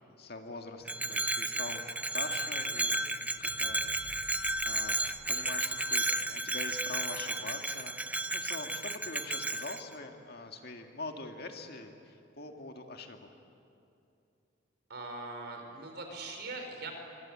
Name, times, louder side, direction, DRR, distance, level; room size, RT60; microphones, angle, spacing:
voice 1, 0.0-3.8 4.2-4.3 4.6-5.0 5.3-13.3, left 3 dB, 55° left, 4 dB, 2.0 m, -44 dB
Bell, 0.8-9.8, right 2 dB, 10° right, 0.7 m, -33 dB
sound 1, 3.3-7.6 8.1-8.2, equal, 20° left, 2.6 m, -56 dB
voice 2, 14.9-16.9, right 3 dB, 55° right, 4 dB, 4.4 m, -41 dB
25.5 x 25.0 x 8.6 m, 2.7 s
head